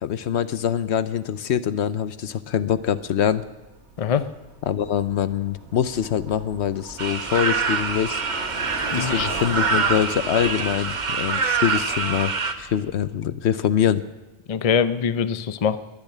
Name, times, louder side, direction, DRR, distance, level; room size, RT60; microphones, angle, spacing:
voice 1, 0.0-3.4 4.7-8.2 8.9-14.0, left 9 dB, 70° left, 14 dB, 0.9 m, -24 dB
Bicycle, 2.5-13.4, right 2 dB, 65° right, 2.7 m, -40 dB
sound 1, 7.0-12.5, right 4 dB, 40° right, 1.1 m, -25 dB
voice 2, 8.9-9.3 14.5-15.8, left 7 dB, 40° left, 12 dB, 0.6 m, -23 dB
21.5 x 7.3 x 9.2 m, 1.1 s
omnidirectional pair, 1.2 m